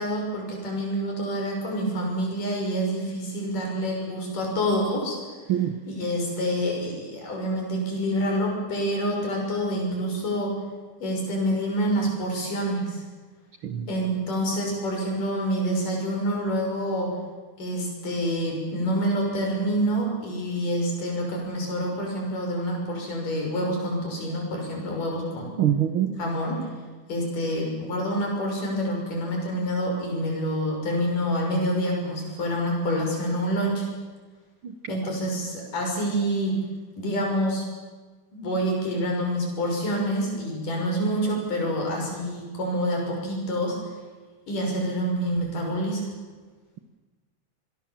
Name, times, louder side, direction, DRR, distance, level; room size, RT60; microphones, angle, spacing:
voice 1, 0.0-5.2 5.9-10.6 11.0-13.0 13.9-17.1 17.6-25.6 26.2-26.7 27.1-33.9 34.9-36.6 37.0-37.6 38.3-43.8 44.5-46.1, equal, 85° left, 0 dB, 7.8 m, -27 dB
voice 2, 25.6-26.1 34.6-35.1, right 10 dB, 55° right, 8 dB, 1.5 m, -25 dB
26.5 x 22.0 x 7.5 m, 1.3 s
omnidirectional pair, 3.6 m